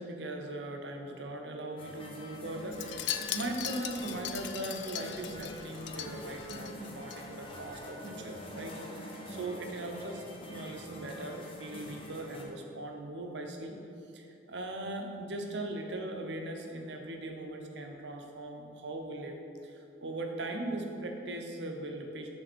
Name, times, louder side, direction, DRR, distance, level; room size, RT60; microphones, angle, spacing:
voice 1, 0.0-13.8 14.1-19.4 19.6-22.3, right 1 dB, 70° right, 2 dB, 0.8 m, -39 dB
sound 1, 1.8-12.5, equal, 30° left, 0.8 m, -45 dB
Wind chime, 2.7-7.2 7.5-7.8 8.0-8.1, left 11 dB, 70° left, 0.4 m, -39 dB
6.8 x 3.5 x 6.1 m, 2.6 s
head